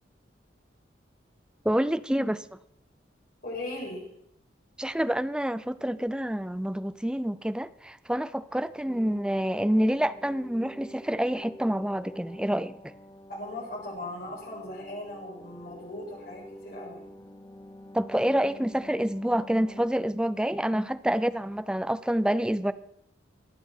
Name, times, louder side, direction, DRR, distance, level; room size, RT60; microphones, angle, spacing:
voice 1, 1.6-2.4 4.8-12.8 17.9-22.7, equal, 5° right, 14 dB, 0.4 m, -27 dB
voice 2, 3.4-4.0 13.3-17.0, left 1 dB, 55° left, -3 dB, 6.5 m, -38 dB
sound 1, 8.9-19.9, equal, 20° left, 1.0 m, -47 dB
22.5 x 8.8 x 4.5 m, 0.73 s
head